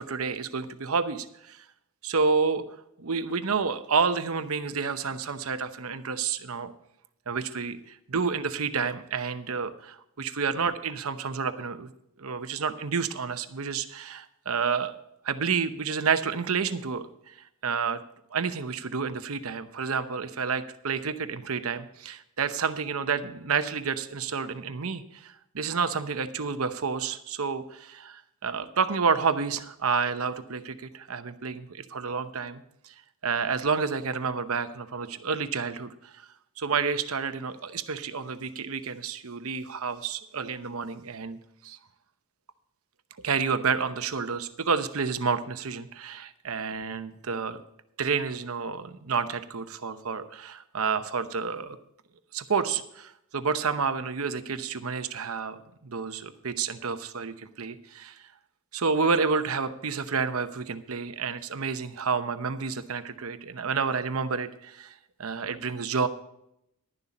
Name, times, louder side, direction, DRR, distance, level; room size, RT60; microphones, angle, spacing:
voice 1, 0.0-1.6 2.0-2.6 3.0-6.7 7.3-11.9 12.2-15.0 15.2-17.4 17.6-18.0 18.3-32.9 33.2-36.2 36.6-41.4 41.6-41.8 43.2-47.6 48.0-51.8 52.3-55.6 55.8-58.2 58.7-64.9 65.2-66.1, right 5 dB, 75° right, 10 dB, 0.9 m, -29 dB
11.5 x 11.0 x 4.2 m, 0.78 s
head